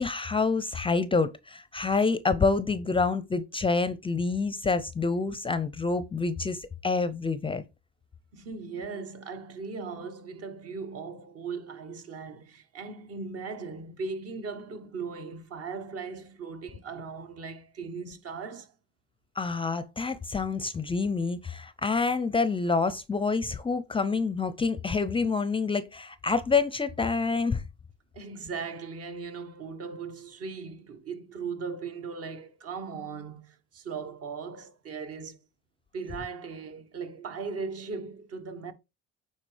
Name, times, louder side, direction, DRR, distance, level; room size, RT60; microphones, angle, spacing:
voice 1, 0.0-7.6 19.4-27.6, left 4 dB, 20° left, 0.5 m, -27 dB
voice 2, 8.3-18.7 28.1-35.4 35.9-38.7, right 5 dB, 55° right, 1.3 m, -38 dB
8.8 x 4.0 x 3.3 m
supercardioid pair, 95°, 30 cm